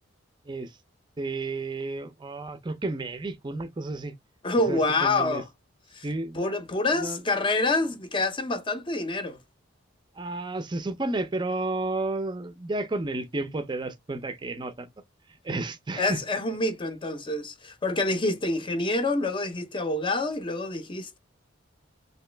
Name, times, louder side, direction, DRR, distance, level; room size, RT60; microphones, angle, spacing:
voice 1, 1.2-4.1 4.7-5.4 6.0-6.6 7.0-7.2 10.2-14.9 15.4-16.2, right 2 dB, 25° right, 0.5 m, -32 dB
voice 2, 4.4-5.4 5.9-6.1 6.3-9.4 16.0-21.2, left 2 dB, 25° left, 0.5 m, -27 dB
3.0 x 2.9 x 3.2 m
head